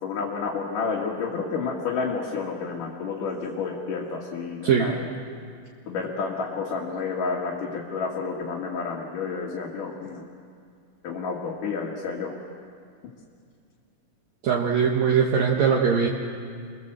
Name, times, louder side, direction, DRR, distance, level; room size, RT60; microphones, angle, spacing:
voice 1, 0.0-5.1 5.9-10.2 11.0-12.4, left 5 dB, 70° left, -3 dB, 3.7 m, -30 dB
voice 2, 14.4-16.1, right 6 dB, 60° right, -1 dB, 2.7 m, -21 dB
29.0 x 23.0 x 7.7 m, 2.3 s
omnidirectional pair, 3.8 m